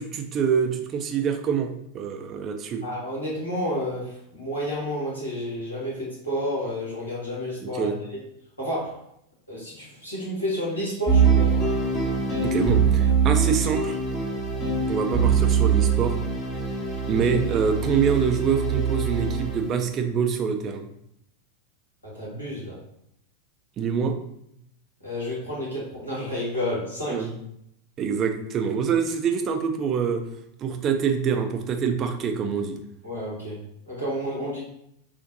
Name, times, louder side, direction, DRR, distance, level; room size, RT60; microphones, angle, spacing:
voice 1, 0.0-2.8 7.6-8.0 12.4-14.0 14.9-16.1 17.1-20.9 23.8-24.2 27.1-27.3 28.0-30.2 30.6-32.8, right 6 dB, 30° right, 6 dB, 0.4 m, -25 dB
voice 2, 2.8-8.2 8.6-9.0 9.5-11.6 17.1-17.2 22.0-22.8 25.0-27.3 33.0-33.6 33.9-34.6, equal, 80° left, -7 dB, 1.4 m, -30 dB
sound 1, 11.1-19.8, right 6 dB, 10° left, 0.9 m, -23 dB
3.8 x 2.5 x 2.7 m, 0.76 s
figure-of-eight pair, 90°, 0 cm